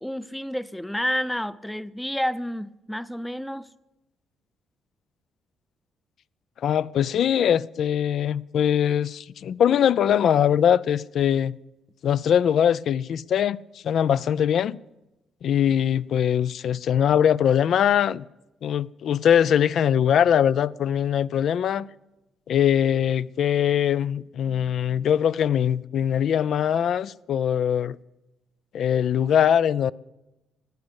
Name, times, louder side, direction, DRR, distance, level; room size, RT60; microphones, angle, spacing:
voice 1, 0.0-3.7, equal, 5° left, 0.6 m, -30 dB
voice 2, 6.6-11.6 12.0-14.8 15.4-18.2 18.6-21.9 22.5-28.0 28.7-29.9, left 9 dB, 65° left, 0.4 m, -22 dB
15.0 x 9.7 x 8.1 m
cardioid pair, 90°, 0 cm